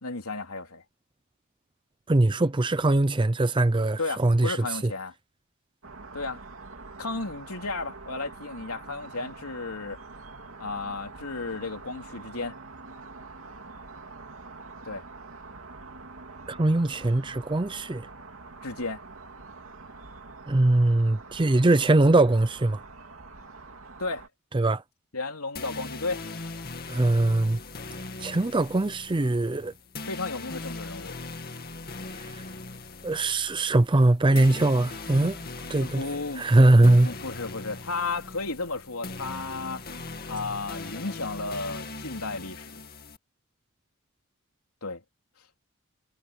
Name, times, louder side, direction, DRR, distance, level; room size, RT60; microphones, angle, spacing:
voice 1, 0.0-0.8 4.0-5.1 6.1-6.4 7.0-10.0 10.6-12.6 14.8-15.0 18.6-19.0 24.0-24.3 25.1-26.2 30.1-31.1 35.8-39.8 40.3-42.8 44.8-45.0, left 3 dB, 80° left, 3.5 m, -33 dB
voice 2, 2.1-4.6 16.5-18.0 20.5-22.8 24.5-24.8 26.9-27.6 28.2-29.7 33.0-35.4 35.7-36.0 36.4-37.1, right 2 dB, 20° right, 0.5 m, -21 dB
sound 1, 5.8-24.3, right 3 dB, 65° right, 3.0 m, -45 dB
sound 2, 25.6-43.2, left 3 dB, 45° left, 2.3 m, -40 dB
head